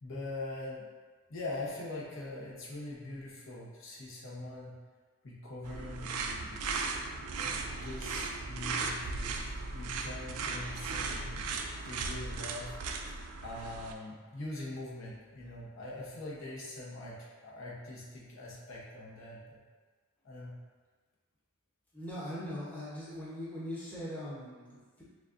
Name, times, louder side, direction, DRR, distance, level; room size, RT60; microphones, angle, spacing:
voice 1, 0.0-0.8 1.3-4.7 5.2-6.6 7.3-11.4 11.8-12.7 13.4-19.6 20.2-20.5, left 2 dB, 55° left, -6 dB, 0.8 m, -42 dB
sound 1, 5.6-13.9, right 4 dB, 85° right, 0.4 m, -37 dB
voice 2, 21.9-25.0, equal, 5° left, -9 dB, 0.8 m, -41 dB
6.4 x 2.3 x 2.5 m, 1.4 s
head